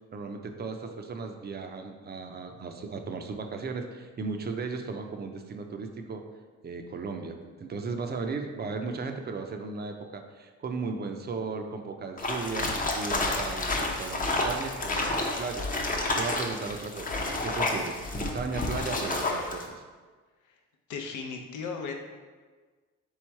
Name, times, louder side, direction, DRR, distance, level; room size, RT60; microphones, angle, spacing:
voice 1, 0.1-6.2 6.6-15.7 16.1-19.8, right 4 dB, 35° right, 5 dB, 0.5 m, -36 dB
sound 1, 12.2-19.6, left 2 dB, 30° left, 0.7 m, -30 dB
voice 2, 20.9-21.9, left 5 dB, 80° left, 3 dB, 0.7 m, -36 dB
3.5 x 3.1 x 4.5 m, 1.4 s
cardioid pair, 90°, 30 cm